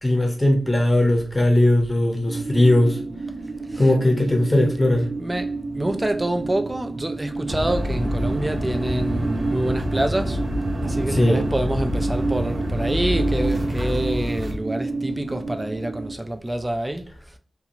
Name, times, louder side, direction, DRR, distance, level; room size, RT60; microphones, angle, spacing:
voice 1, 0.0-3.0 3.8-5.1 11.1-11.4, left 1 dB, 10° left, 0.7 m, -19 dB
sound 1, 2.3-16.1, right 3 dB, 85° right, 0.6 m, -30 dB
voice 2, 5.2-10.4 10.8-17.1, right 1 dB, 15° right, 0.3 m, -26 dB
sound 2, 7.5-14.5, equal, 50° right, 0.7 m, -27 dB
2.6 x 2.3 x 2.9 m
wide cardioid pair, 125°, 0 cm